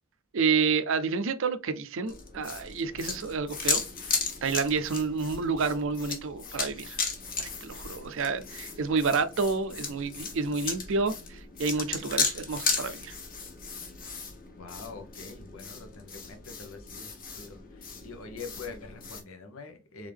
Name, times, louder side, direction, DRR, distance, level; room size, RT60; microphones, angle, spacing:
voice 1, 0.3-7.0 7.4-13.2, right 4 dB, 65° right, 0.5 m, -29 dB
sound 1, 2.1-19.2, left 5 dB, 45° left, 1.1 m, -35 dB
voice 2, 2.9-3.2 14.6-20.1, left 4 dB, 80° left, 1.0 m, -45 dB
3.6 x 3.6 x 3.4 m
head